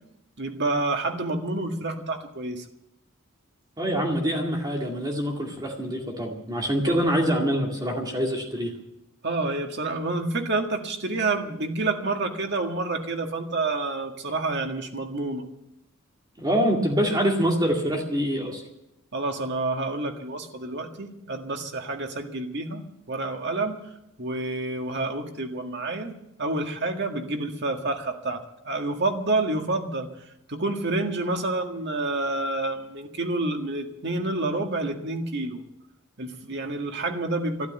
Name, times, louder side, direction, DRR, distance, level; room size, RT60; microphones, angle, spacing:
voice 1, 0.4-2.7 6.9-7.0 9.2-15.4 19.1-22.8 23.1-23.8 24.2-26.1 26.4-35.6 36.2-37.7, right 2 dB, 55° right, 4 dB, 1.9 m, -28 dB
voice 2, 3.8-8.7 16.4-18.6, equal, 20° right, 1 dB, 2.2 m, -25 dB
12.5 x 12.0 x 8.9 m, 0.87 s
head